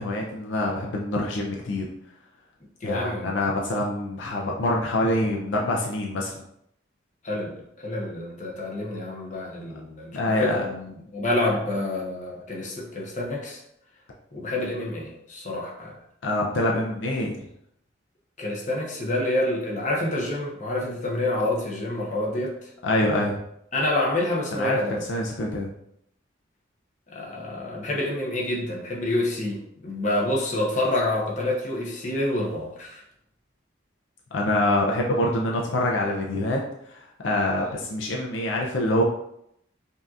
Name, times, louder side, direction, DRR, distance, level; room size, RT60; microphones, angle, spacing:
voice 1, 0.0-1.9 2.8-6.3 10.1-10.6 16.2-17.4 22.8-23.4 24.5-24.8 25.1-25.7 34.3-36.6 36.9-39.0, left 1 dB, 75° left, -1 dB, 0.5 m, -25 dB
voice 2, 2.8-3.3 7.2-13.6 14.3-16.0 18.4-22.7 23.7-25.0 27.1-33.0, left 1 dB, 40° left, -2 dB, 0.9 m, -28 dB
5.4 x 2.7 x 2.4 m, 0.75 s
head